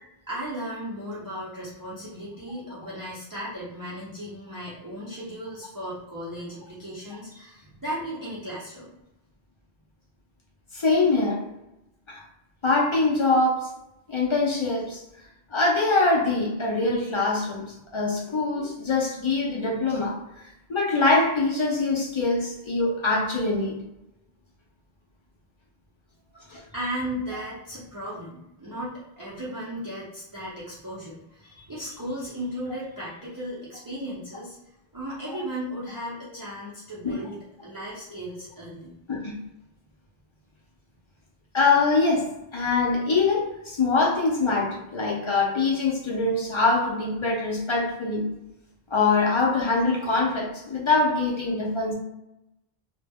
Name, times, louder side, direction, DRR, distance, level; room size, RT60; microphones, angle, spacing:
voice 1, 0.3-8.9 26.3-34.6 34.9-38.9, equal, 25° right, -8 dB, 0.5 m, -36 dB
voice 2, 10.7-11.5 12.1-12.2 12.6-13.7 14.1-15.0 15.5-17.7 17.9-20.2 20.7-23.8 26.5-26.6 27.3-27.4 37.0-37.2 39.1-39.4 41.5-48.3 48.9-51.9, left 3 dB, 50° left, -3 dB, 0.3 m, -23 dB
2.1 x 2.0 x 3.4 m, 0.89 s
omnidirectional pair, 1.1 m